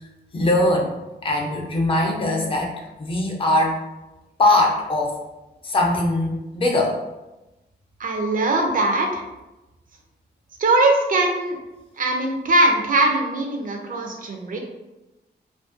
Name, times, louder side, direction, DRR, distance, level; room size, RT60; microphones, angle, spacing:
voice 1, 0.3-1.0 1.2-2.7 3.0-3.8 4.4-5.2 5.6-7.0, left 1 dB, 30° left, -1 dB, 0.5 m, -21 dB
voice 2, 8.0-9.2 10.6-11.6 12.0-14.6, right 2 dB, 50° right, 2 dB, 0.4 m, -21 dB
2.5 x 2.2 x 2.4 m, 1.0 s
wide cardioid pair, 125°, 18 cm